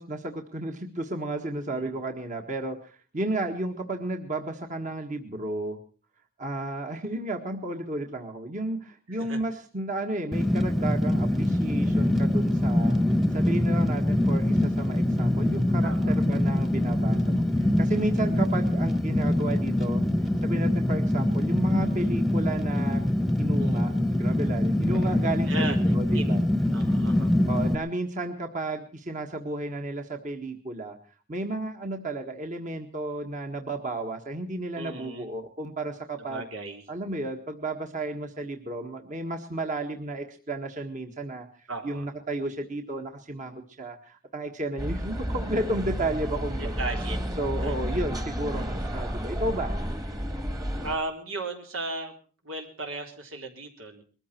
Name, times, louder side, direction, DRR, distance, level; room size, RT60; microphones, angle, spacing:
voice 1, 0.0-5.8 6.4-20.0 20.4-23.1 23.4-26.4 27.5-31.0 31.3-36.4 36.9-46.7 47.4-49.8, right 2 dB, 40° right, 4 dB, 1.6 m, -33 dB
voice 2, 1.7-2.0 9.2-9.4 15.8-16.2 23.6-24.1 25.5-25.8 26.1-26.3 26.7-27.4 34.7-35.3 36.2-36.8 41.7-42.1 46.8-47.2 47.6-47.7 50.8-52.2 52.4-54.0, right 2 dB, 85° right, 3 dB, 4.1 m, -36 dB
Fire, 10.3-27.8, left 1 dB, ahead, 1.1 m, -24 dB
sound 1, 44.8-51.0, equal, 20° right, 1.6 m, -31 dB
22.0 x 14.5 x 4.5 m, 0.39 s
head